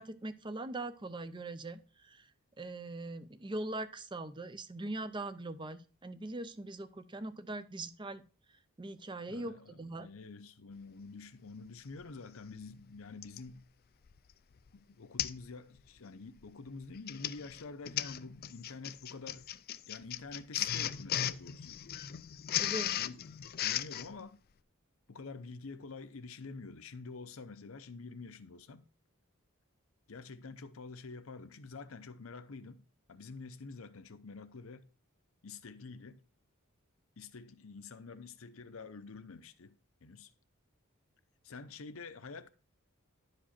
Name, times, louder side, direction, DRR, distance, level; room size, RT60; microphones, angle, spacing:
voice 1, 0.0-1.8 2.1-2.2 2.6-8.2 8.8-10.1 22.6-22.9, right 2 dB, 20° right, 0.5 m, -41 dB
voice 2, 9.3-13.7 14.7-19.5 19.9-21.8 22.5-24.4 25.1-28.8 30.1-34.9 35.4-36.2 37.2-40.3 41.4-42.5, left 4 dB, 70° left, 0.7 m, -48 dB
Printer, 12.0-12.1 13.2-13.5 14.1-14.3 14.6-14.7 15.2-15.5 15.8-16.1 16.8-24.1, left 11 dB, 45° left, 0.4 m, -36 dB
11.0 x 4.9 x 4.3 m
head